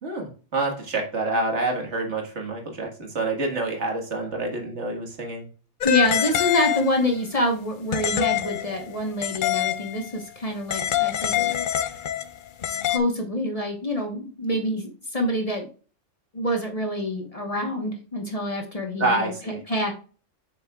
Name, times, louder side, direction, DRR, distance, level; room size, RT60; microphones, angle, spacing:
voice 1, 0.0-5.5 19.0-19.6, right 2 dB, 70° right, 1 dB, 2.0 m, -27 dB
sound 1, 5.8-7.1 7.9-10.1 10.7-13.0, left 11 dB, 55° left, 0.6 m, -25 dB
voice 2, 5.8-11.5 12.6-15.7 16.3-19.3 19.7-19.9, left 1 dB, 30° left, 2 dB, 1.3 m, -26 dB
7.6 x 6.4 x 2.3 m, 0.38 s
omnidirectional pair, 1.2 m